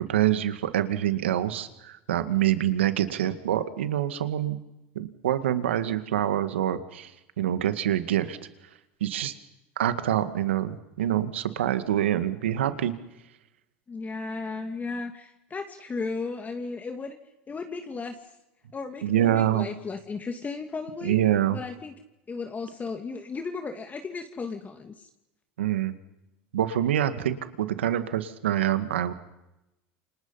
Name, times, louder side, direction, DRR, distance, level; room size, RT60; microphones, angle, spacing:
voice 1, 0.0-4.6 5.0-8.4 9.0-9.3 9.8-12.9 19.0-19.7 21.0-21.6 25.6-25.9 26.5-29.1, right 11 dB, 90° right, 11 dB, 2.0 m, -26 dB
voice 2, 13.9-17.2 17.5-18.3 18.7-21.2 21.5-21.9 22.3-25.1, left 4 dB, 25° left, 5 dB, 2.7 m, -35 dB
29.0 x 27.0 x 5.8 m, 0.92 s
hypercardioid pair, 85°, 6 cm